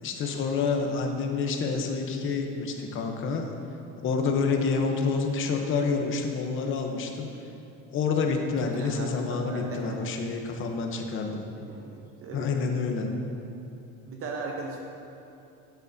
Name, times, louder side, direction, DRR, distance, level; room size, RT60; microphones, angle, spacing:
voice 1, 0.0-3.5 4.0-7.3 7.9-11.4 12.3-13.1, left 4 dB, 40° left, 3 dB, 0.8 m, -28 dB
voice 2, 8.8-10.0 11.7-12.5 14.1-14.8, right 4 dB, 45° right, 0 dB, 0.8 m, -38 dB
11.0 x 8.1 x 2.7 m, 2.7 s
cardioid pair, 165°, 32 cm